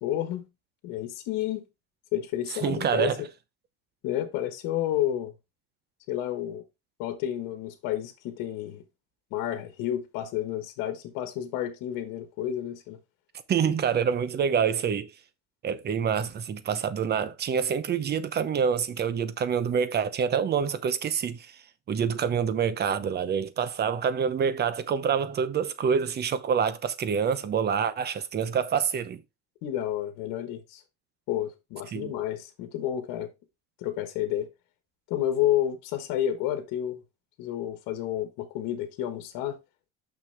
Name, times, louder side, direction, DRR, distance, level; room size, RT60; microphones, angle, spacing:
voice 1, 0.0-0.5 0.8-1.6 2.1-3.3 4.0-5.3 6.1-6.6 7.0-8.8 9.3-13.0 29.6-30.8 31.3-33.3 33.8-34.5 35.1-37.0 37.4-39.6, left 11 dB, 80° left, 1.5 m, -30 dB
voice 2, 2.6-3.2 13.5-15.1 15.6-21.5 21.9-29.2 31.9-32.1, right 7 dB, 30° right, 0.8 m, -26 dB
6.3 x 6.1 x 3.4 m
cardioid pair, 140°, 32 cm